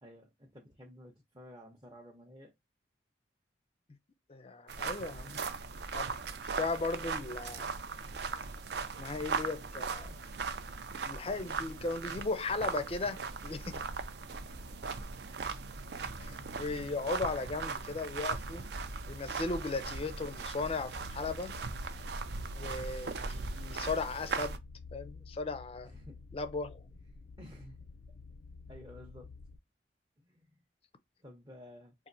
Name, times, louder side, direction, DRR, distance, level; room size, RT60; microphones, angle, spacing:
voice 1, 0.0-2.5 10.1-10.2 16.0-16.8 25.8-26.2 27.4-27.9 28.7-29.3 30.2-30.6 31.2-31.9, equal, 20° right, 0.7 m, -53 dB
voice 2, 4.3-5.4 5.9-6.2 6.6-7.8 9.0-10.1 11.0-13.8 16.2-18.7 19.1-21.6 22.5-24.6 24.9-25.9 26.3-26.8, left 3 dB, 30° left, 0.4 m, -37 dB
sound 1, 4.7-24.6, right 4 dB, 60° right, 0.4 m, -39 dB
sound 2, 13.9-29.6, left 4 dB, 85° left, 0.5 m, -52 dB
4.2 x 2.5 x 2.6 m
head